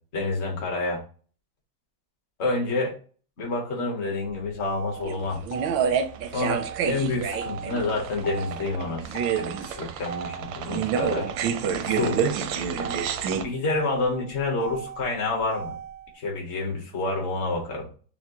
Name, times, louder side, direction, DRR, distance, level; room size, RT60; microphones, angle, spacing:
voice 1, 0.1-1.0 2.4-2.9 3.4-5.4 6.3-11.3 11.9-12.2 13.4-15.7 16.1-17.9, left 2 dB, 45° left, 0 dB, 1.0 m, -28 dB
Motor vehicle (road), 4.2-16.2, right 5 dB, 85° left, 0.5 m, -39 dB
sound 1, 5.0-13.4, right 7 dB, 85° right, 1.3 m, -28 dB
5.9 x 2.1 x 2.8 m, 0.42 s
omnidirectional pair, 2.0 m